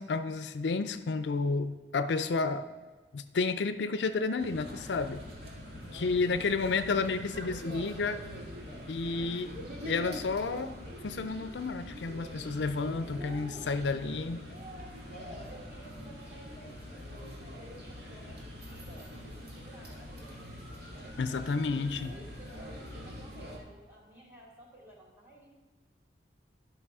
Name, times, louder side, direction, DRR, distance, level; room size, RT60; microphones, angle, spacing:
voice 1, 0.0-2.7 3.1-5.2 5.9-8.2 8.9-9.5 9.9-10.7 11.0-14.4 21.2-22.1, left 4 dB, 80° left, 11 dB, 0.5 m, -31 dB
sound 1, 4.4-23.6, equal, 65° right, 2.1 m, -44 dB
voice 2, 13.0-13.8 14.5-17.0 17.4-20.3 21.8-25.5, equal, 15° right, -3 dB, 2.5 m, -52 dB
11.0 x 6.0 x 4.8 m, 1.3 s
head